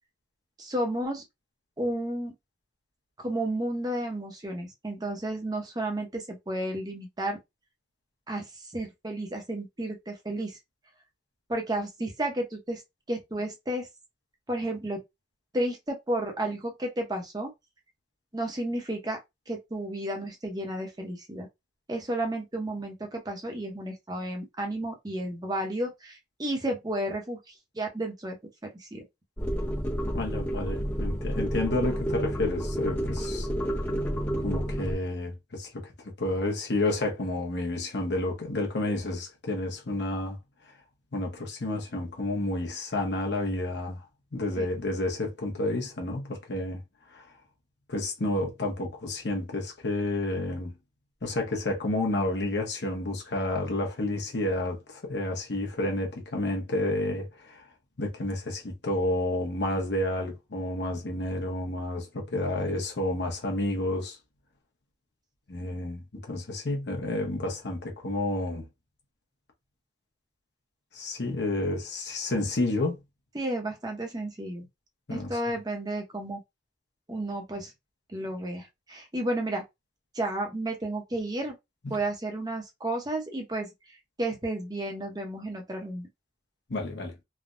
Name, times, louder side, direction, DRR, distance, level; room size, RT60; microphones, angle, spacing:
voice 1, 0.6-1.2 1.8-2.3 3.2-7.4 8.3-10.6 11.5-12.8 13.1-13.9 14.5-15.0 15.5-17.5 18.3-19.2 19.5-21.5 21.9-28.4 28.7-29.0 44.6-44.7 73.3-74.7 75.1-76.4 77.1-77.7 78.1-79.6 80.1-81.5 81.9-83.7 84.2-86.1, right 1 dB, 20° right, 0.8 m, -32 dB
sound 1, 29.4-34.9, equal, 10° left, 0.8 m, -30 dB
voice 2, 30.1-33.5 34.4-40.4 41.1-44.0 44.3-46.8 47.1-47.3 47.9-50.8 51.2-57.7 58.0-64.2 65.5-68.7 70.9-73.0 75.1-75.6 81.8-82.0 86.7-87.1, left 2 dB, 65° left, 1.0 m, -30 dB
3.4 x 2.2 x 2.5 m
head